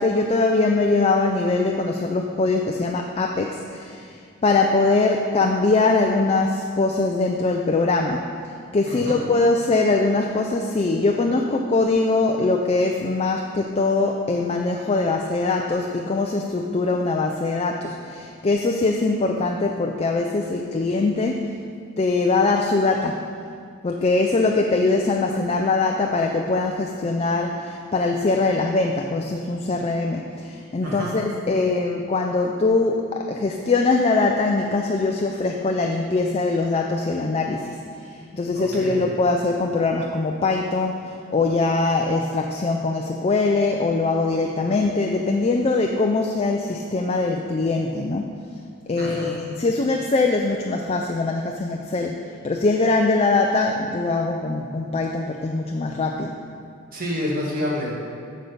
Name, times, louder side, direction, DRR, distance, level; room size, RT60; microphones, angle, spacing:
voice 1, 0.0-8.3 8.7-21.5 22.0-23.2 23.8-48.3 48.9-56.4, left 3 dB, 30° left, 2 dB, 0.4 m, -22 dB
voice 2, 8.9-9.2 30.8-31.1 38.5-39.0 49.0-49.3 56.9-57.9, left 1 dB, 40° right, -4 dB, 1.8 m, -28 dB
7.4 x 5.3 x 7.1 m, 2.3 s
head